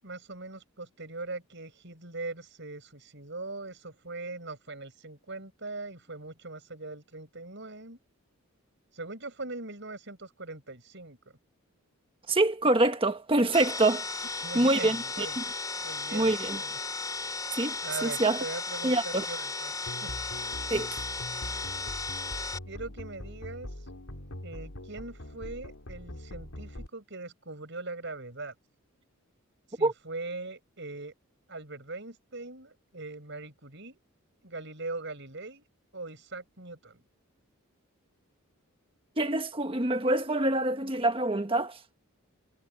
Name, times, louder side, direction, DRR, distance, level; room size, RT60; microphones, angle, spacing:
voice 1, 0.0-8.0 8.9-11.2 14.4-15.4 15.8-16.8 17.8-19.7 20.0-20.1 22.7-23.8 24.4-28.5 29.7-31.1 31.5-34.0 34.4-35.6 35.9-37.0, right 3 dB, 55° right, 7.1 m, -41 dB
voice 2, 12.3-15.4 16.1-16.6 17.6-17.7 18.0-18.4 18.8-19.2 20.7-20.9 29.8-29.9 39.2-41.8, right 2 dB, 25° right, 1.4 m, -26 dB
sound 1, 13.5-22.6, left 3 dB, 15° left, 5.1 m, -35 dB
sound 2, 19.9-26.9, left 1 dB, 75° left, 3.2 m, -42 dB
head